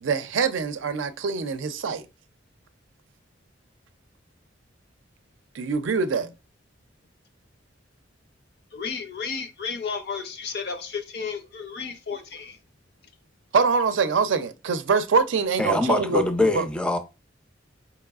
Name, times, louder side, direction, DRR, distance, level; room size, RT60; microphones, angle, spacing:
voice 1, 0.0-2.0 5.5-6.3 13.5-16.2 16.5-16.7, right 5 dB, 85° right, 0.4 m, -24 dB
voice 2, 8.7-12.6, left 5 dB, 60° left, 0.6 m, -33 dB
voice 3, 15.6-17.0, left 1 dB, 5° left, 0.4 m, -23 dB
4.6 x 3.0 x 2.3 m
head